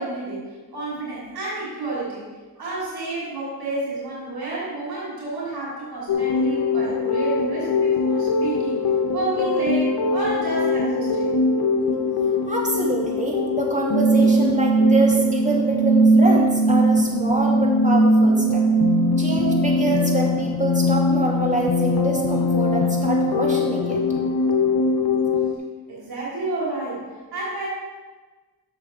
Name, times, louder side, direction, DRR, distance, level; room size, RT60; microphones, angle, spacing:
voice 1, 0.0-2.2 2.5-8.9 9.1-11.4 25.9-27.7, right 2 dB, 85° right, -7 dB, 3.0 m, -30 dB
sound 1, 6.1-25.5, left 1 dB, 80° left, 0.9 m, -20 dB
voice 2, 12.5-18.6 19.2-24.0, right 1 dB, 20° right, -2 dB, 2.5 m, -26 dB
11.5 x 6.8 x 3.8 m, 1.3 s
cardioid pair, 50°, 36 cm